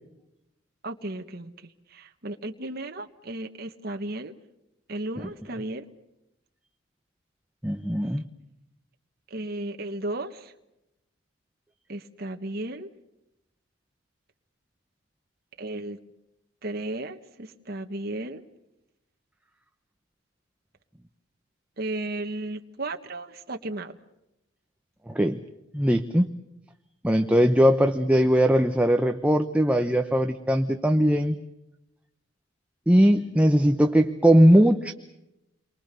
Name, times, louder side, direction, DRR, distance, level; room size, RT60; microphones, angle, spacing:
voice 1, 0.8-4.3 4.9-5.9 9.3-10.5 11.9-12.9 15.6-16.0 16.6-18.4 21.8-24.0, right 2 dB, 50° right, 5 dB, 1.4 m, -34 dB
voice 2, 7.6-8.2 25.1-25.4 25.7-26.3 27.0-31.4 32.9-34.9, equal, 5° right, 6 dB, 0.9 m, -20 dB
29.5 x 23.5 x 6.8 m, 0.89 s
head